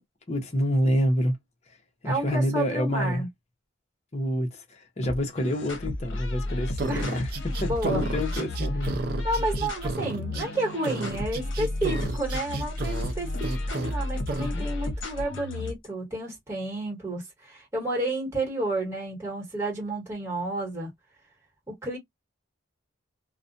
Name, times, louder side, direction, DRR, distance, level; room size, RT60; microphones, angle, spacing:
voice 1, 0.3-1.4 2.0-3.2 4.1-9.0 14.4-14.7, equal, 35° left, 0.7 m, -27 dB
voice 2, 2.0-3.3 6.9-7.2 7.6-8.0 9.2-20.9 21.7-22.0, right 1 dB, 15° right, 1.3 m, -31 dB
sound 1, 5.0-15.9, left 1 dB, 65° left, 0.8 m, -32 dB
sound 2, 6.8-10.5 10.8-13.1 13.4-13.9 14.3-14.5, right 3 dB, 45° right, 0.4 m, -32 dB
2.3 x 2.1 x 2.5 m
head